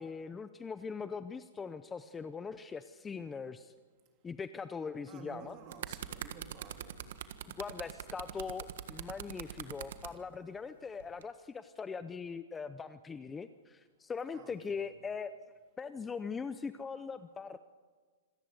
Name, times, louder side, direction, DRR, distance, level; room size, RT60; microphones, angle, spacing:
voice 1, 0.0-3.7 4.2-5.6 7.6-15.3 15.8-17.6, left 5 dB, 10° left, 12 dB, 0.6 m, -41 dB
voice 2, 5.1-7.0 14.3-14.9, right 6 dB, 30° right, 5 dB, 3.2 m, -52 dB
sound 1, 5.4-10.1 11.0-11.2, right 10 dB, 60° right, 1.5 m, -43 dB
26.5 x 14.0 x 8.3 m, 1.5 s
hypercardioid pair, 165°, 0 cm